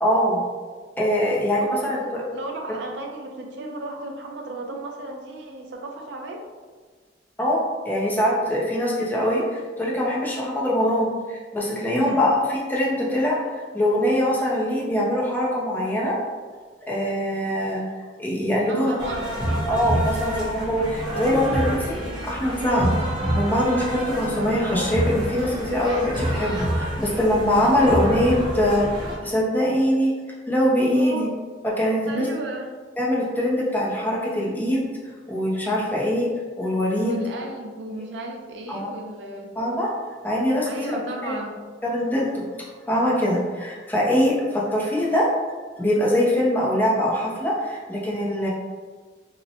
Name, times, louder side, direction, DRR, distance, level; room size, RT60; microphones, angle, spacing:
voice 1, 0.0-0.4 1.0-2.2 7.4-12.4 12.7-13.4 13.7-16.2 16.9-17.8 18.2-18.9 19.7-22.0 22.2-22.9 23.3-30.1 30.5-31.3 31.8-32.3 33.0-34.9 35.3-36.3 36.6-37.2 38.7-38.9 39.6-39.9 40.2-41.0 41.2-41.4 41.8-42.5 42.9-45.3 45.8-48.5, equal, 10° left, -5 dB, 0.5 m, -23 dB
voice 2, 1.6-6.4 11.9-12.2 18.7-19.4 20.1-20.2 30.9-31.3 32.1-32.7 37.0-39.5 40.7-41.6, right 1 dB, 70° right, 2 dB, 0.4 m, -34 dB
sound 1, 19.0-29.2, right 1 dB, 25° right, 0.7 m, -27 dB
2.7 x 2.1 x 2.6 m, 1.4 s
head